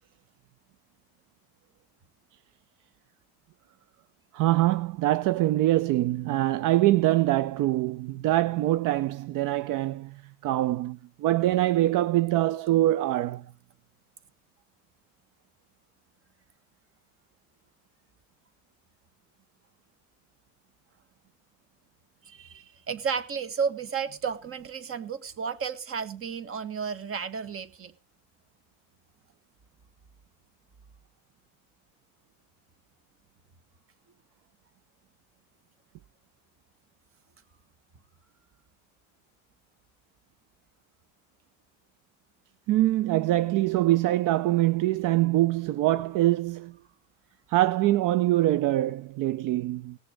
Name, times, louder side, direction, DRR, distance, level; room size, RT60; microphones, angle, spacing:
voice 1, 4.3-13.4 42.7-46.7 47.5-50.0, right 15 dB, 65° right, 0.7 m, -24 dB
voice 2, 22.2-27.9, right 6 dB, 40° right, 1.6 m, -32 dB
18.0 x 6.9 x 5.3 m
cardioid pair, 110°, 34 cm